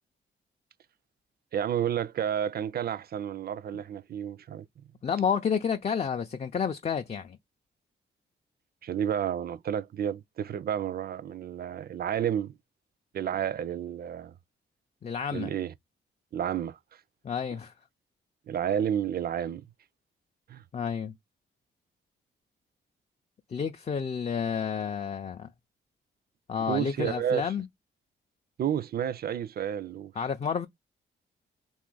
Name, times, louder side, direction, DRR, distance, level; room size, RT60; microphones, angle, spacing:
voice 1, 1.5-4.7 8.8-12.5 13.1-14.3 15.3-15.7 16.3-16.8 18.5-19.6 20.5-20.6 26.7-27.5 28.6-30.1, right 9 dB, 50° right, 0.4 m, -31 dB
voice 2, 5.0-7.4 15.0-15.5 17.2-17.7 20.7-21.1 23.5-25.5 26.5-27.7 30.2-30.7, left 7 dB, 30° left, 0.4 m, -30 dB
2.7 x 2.5 x 3.8 m
cardioid pair, 60°, 21 cm